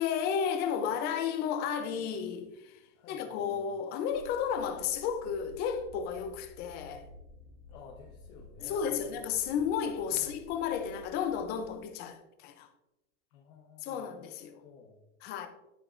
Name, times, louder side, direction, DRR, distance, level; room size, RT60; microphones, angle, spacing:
voice 1, 0.0-2.7 3.1-7.1 8.6-12.7 13.8-14.6 15.2-15.5, left 7 dB, 25° left, 0.7 m, -33 dB
voice 2, 2.9-3.4 7.7-9.6 10.1-10.4 13.3-14.3 14.6-15.0, left 6 dB, 45° left, 1.3 m, -54 dB
sound 1, 4.1-11.7, left 1 dB, 90° right, 2.4 m, -53 dB
12.0 x 4.6 x 2.6 m
supercardioid pair, 150°, 37 cm